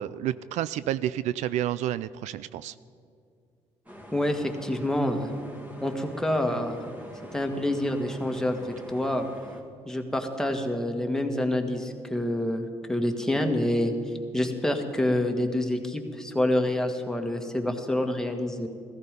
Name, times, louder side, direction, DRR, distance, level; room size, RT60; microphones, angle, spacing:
voice 1, 0.0-2.7, right 12 dB, 70° right, 16 dB, 0.4 m, -30 dB
sound 1, 3.9-9.6, equal, 10° right, 2.2 m, -45 dB
voice 2, 4.1-5.3 5.8-6.8 7.3-9.3 9.9-13.9 14.3-18.7, left 1 dB, 5° left, 4 dB, 1.8 m, -27 dB
15.0 x 14.5 x 5.3 m, 2.4 s
supercardioid pair, 75°, 12 cm